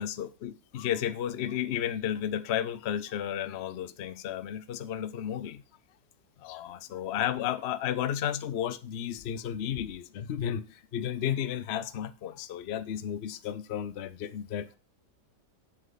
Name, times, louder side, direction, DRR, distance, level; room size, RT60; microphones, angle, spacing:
voice 1, 0.0-5.6 6.4-14.8, left 10 dB, 55° left, 0.7 m, -33 dB
8.0 x 7.6 x 4.1 m
omnidirectional pair, 1.8 m